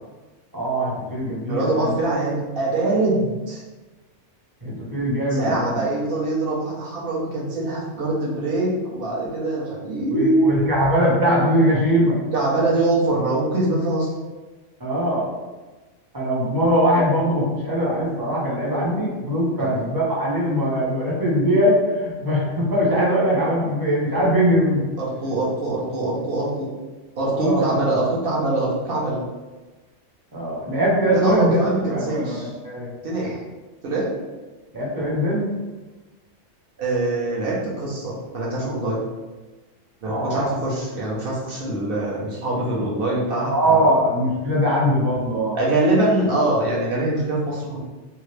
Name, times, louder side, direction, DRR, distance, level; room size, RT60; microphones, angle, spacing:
voice 1, 0.5-1.9 4.6-5.8 10.1-12.2 14.8-15.2 16.1-24.8 27.4-27.6 30.3-31.6 31.9-32.9 34.7-35.5 40.0-40.5 43.4-45.6, equal, 20° right, -6 dB, 0.7 m, -21 dB
voice 2, 1.5-3.6 5.3-10.4 12.3-14.1 25.0-26.7 27.2-29.2 31.1-32.5 33.0-33.4 33.8-34.1 36.8-39.0 40.0-43.9 45.5-47.8, right 2 dB, 55° right, -4 dB, 0.9 m, -23 dB
2.8 x 2.4 x 3.2 m, 1.2 s
omnidirectional pair, 1.2 m